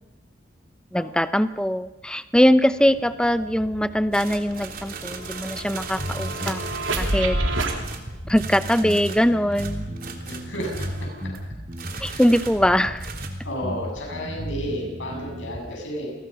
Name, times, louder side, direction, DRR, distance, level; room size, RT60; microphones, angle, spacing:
voice 1, 0.9-6.6 7.0-7.4 8.3-9.9 12.0-13.1, equal, 5° left, 12 dB, 0.8 m, -21 dB
sound 1, 2.4-2.5 2.8-7.8, right 2 dB, 90° right, 3.6 m, -30 dB
sound 2, 4.1-7.4 7.8-11.4 11.7-13.3, right 6 dB, 50° right, 3.1 m, -39 dB
sound 3, 6.0-15.6, equal, 25° right, 6.0 m, -34 dB
voice 2, 10.3-10.9 11.9-12.2 13.4-16.1, equal, 80° left, 0 dB, 7.8 m, -32 dB
29.5 x 22.0 x 5.7 m, 1.0 s
head